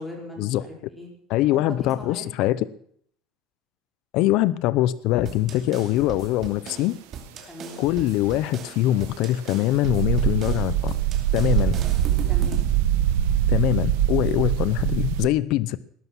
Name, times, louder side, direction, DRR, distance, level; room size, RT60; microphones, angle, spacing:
voice 1, 0.0-1.1 1.5-2.3 5.6-5.8 7.5-7.8 12.3-12.6, left 2 dB, 5° left, 0 dB, 5.0 m, -39 dB
voice 2, 1.3-2.6 4.1-7.0 7.8-11.0 11.3-11.8 13.5-15.8, left 14 dB, 60° left, 18 dB, 0.7 m, -23 dB
sound 1, 5.2-12.8, right 7 dB, 35° right, 2.8 m, -40 dB
sound 2, 9.8-15.3, right 11 dB, 80° right, 1.2 m, -23 dB
18.5 x 11.0 x 6.2 m, 0.63 s
cardioid pair, 150°, 0 cm